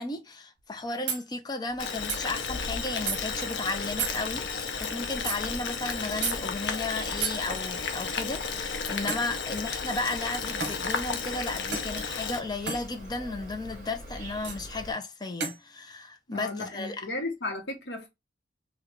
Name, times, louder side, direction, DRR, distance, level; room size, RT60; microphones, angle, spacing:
voice 1, 0.0-17.1, left 3 dB, 25° left, 0.5 m, -34 dB
sound 1, 0.6-0.7 1.1-1.2 2.1-2.2 3.1-3.2 4.0-4.2 5.3-5.4 6.2-6.4 7.2-7.4 9.1-9.3 10.6-10.8 11.7-11.9 12.7-12.8 14.4-14.6 15.4-15.6, right 5 dB, 75° right, 0.9 m, -31 dB
Insect, 1.7-14.9, equal, 40° right, 1.5 m, -45 dB
Boiling, 1.8-12.4, left 5 dB, 90° left, 0.6 m, -33 dB
voice 2, 16.3-18.1, left 2 dB, 70° left, 1.0 m, -34 dB
2.9 x 2.3 x 3.5 m
head